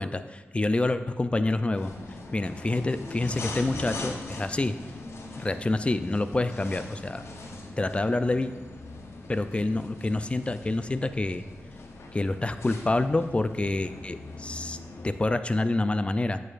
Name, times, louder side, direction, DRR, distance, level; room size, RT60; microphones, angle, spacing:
voice 1, 0.0-1.9 2.3-4.7 5.4-7.2 7.8-8.5 9.3-11.4 12.1-14.8 15.0-16.4, left 2 dB, 25° left, 10 dB, 0.4 m, -27 dB
sound 1, 1.7-15.2, left 2 dB, 70° left, 0.7 m, -41 dB
8.8 x 6.5 x 2.5 m, 1.2 s
wide cardioid pair, 70°, 5 cm